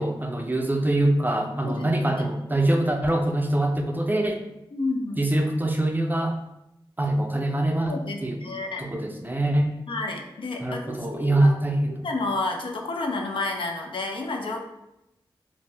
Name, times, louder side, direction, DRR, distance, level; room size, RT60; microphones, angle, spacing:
voice 1, 0.0-4.4 5.2-6.4 7.0-8.4 8.8-9.7 10.6-12.1, right 1 dB, 20° right, 3 dB, 0.5 m, -24 dB
voice 2, 4.7-5.2 7.8-8.9 9.9-11.5 12.0-14.6, left 3 dB, 70° left, 2 dB, 0.5 m, -30 dB
2.6 x 2.1 x 3.3 m, 0.87 s
cardioid pair, 40°, 9 cm